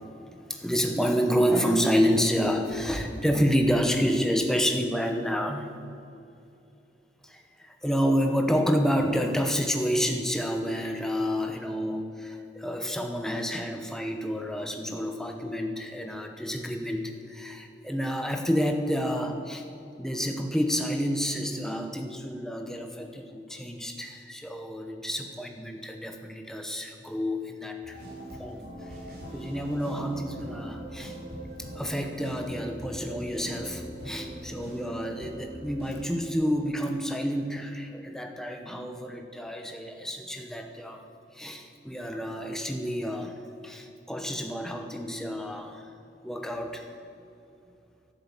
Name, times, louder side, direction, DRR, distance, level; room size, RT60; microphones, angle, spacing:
voice 1, 0.5-5.7 7.2-19.6 20.0-28.0 28.4-28.9 29.3-31.2 31.6-41.0 41.3-43.4 43.6-45.9 46.2-46.9, equal, 5° left, 4 dB, 1.0 m, -29 dB
sound 1, 27.8-36.3, right 1 dB, 55° right, 4.5 m, -41 dB
11.5 x 11.0 x 8.3 m, 2.7 s
head